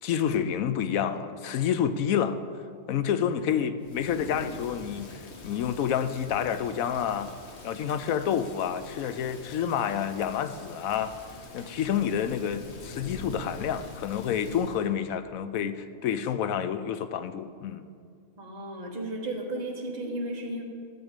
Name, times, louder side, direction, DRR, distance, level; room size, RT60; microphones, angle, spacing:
voice 1, 0.0-2.4 2.9-7.3 7.6-11.1 11.5-17.9, left 8 dB, 90° left, 11 dB, 1.0 m, -29 dB
Thunder / Rain, 3.8-14.9, left 2 dB, 55° left, 1.3 m, -44 dB
voice 2, 18.4-20.6, right 1 dB, 30° right, 0 dB, 1.4 m, -34 dB
13.0 x 7.8 x 5.1 m, 2.3 s
omnidirectional pair, 1.4 m